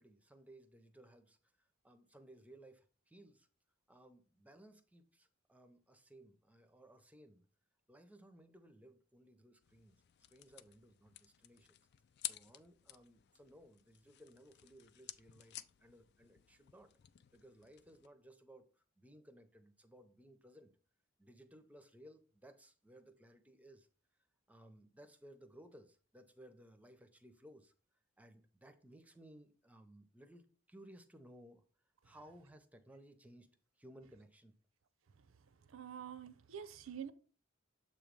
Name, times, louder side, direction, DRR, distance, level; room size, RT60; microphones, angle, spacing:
voice 1, 0.0-3.5 3.9-7.5 7.9-10.0 10.3-11.8 12.2-16.9 17.3-20.7 21.2-23.9 24.5-27.7 28.2-31.7 32.0-34.6, right 1 dB, 5° right, 0.6 m, -60 dB
sound 1, 9.6-18.1, left 13 dB, 55° left, 0.3 m, -52 dB
voice 2, 35.1-37.1, right 8 dB, 75° right, 0.6 m, -48 dB
7.2 x 3.0 x 5.1 m
head